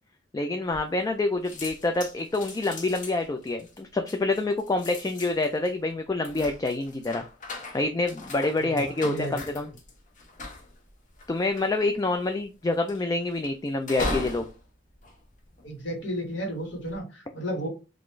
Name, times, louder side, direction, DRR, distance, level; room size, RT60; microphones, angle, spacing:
voice 1, 0.3-7.2 7.7-9.7 11.3-14.4, left 2 dB, 20° left, 5 dB, 0.3 m, -27 dB
sound 1, 0.7-1.2 1.4-16.0 16.6-17.0, left 2 dB, 45° left, 0.8 m, -39 dB
voice 2, 8.6-9.6 15.6-17.7, right 1 dB, 70° left, 1 dB, 1.5 m, -33 dB
3.9 x 2.5 x 3.1 m, 0.30 s
head